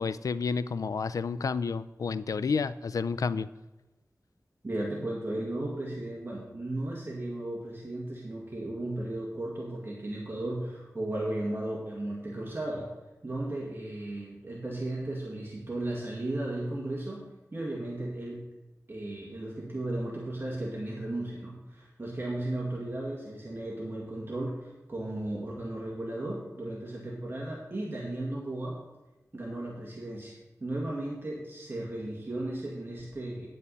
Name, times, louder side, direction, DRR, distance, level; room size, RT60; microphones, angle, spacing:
voice 1, 0.0-3.5, left 5 dB, 85° left, 15 dB, 0.4 m, -30 dB
voice 2, 4.6-12.9 13.2-17.2 17.5-18.4 18.9-28.8 29.3-33.5, right 1 dB, 40° right, -3 dB, 2.0 m, -35 dB
9.8 x 9.3 x 4.1 m, 1.0 s
wide cardioid pair, 65°, 6 cm